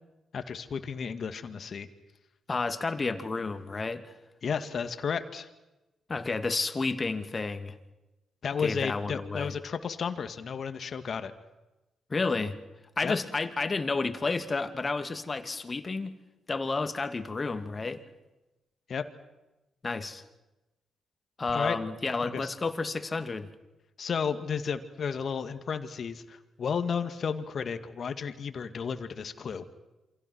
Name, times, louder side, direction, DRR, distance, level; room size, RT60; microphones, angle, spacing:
voice 1, 0.3-1.9 4.4-5.5 8.4-11.3 13.0-13.1 18.9-19.0 21.5-21.8 22.2-22.5 24.0-29.6, left 6 dB, 55° left, 9 dB, 2.0 m, -33 dB
voice 2, 2.5-4.1 6.1-7.7 8.6-9.5 12.1-12.5 13.0-16.1 16.5-18.0 19.8-20.2 21.4-23.5, left 3 dB, 35° left, 8 dB, 2.5 m, -31 dB
28.0 x 25.5 x 6.2 m, 1.0 s
hypercardioid pair, 40°, 0 cm